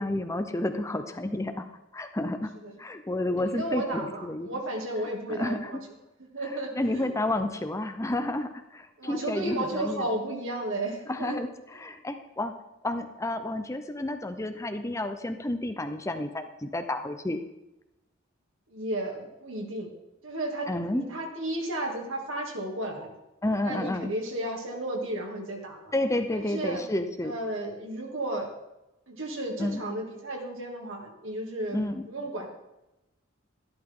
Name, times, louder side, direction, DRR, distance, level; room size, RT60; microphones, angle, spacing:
voice 1, 0.0-1.7 1.9-2.5 2.8-4.5 5.3-5.7 6.8-10.0 11.1-11.5 11.8-12.5 12.8-17.4 20.7-21.0 23.4-24.1 25.9-27.3 29.6-29.8 31.7-32.0, left 1 dB, 15° left, 8 dB, 0.7 m, -30 dB
voice 2, 3.4-5.8 6.2-7.1 9.0-11.4 18.7-19.9 20.2-23.1 23.6-25.9 26.3-26.8 27.2-28.6 29.1-32.5, right 1 dB, 70° right, 0 dB, 2.6 m, -33 dB
12.5 x 12.0 x 3.8 m, 0.93 s
head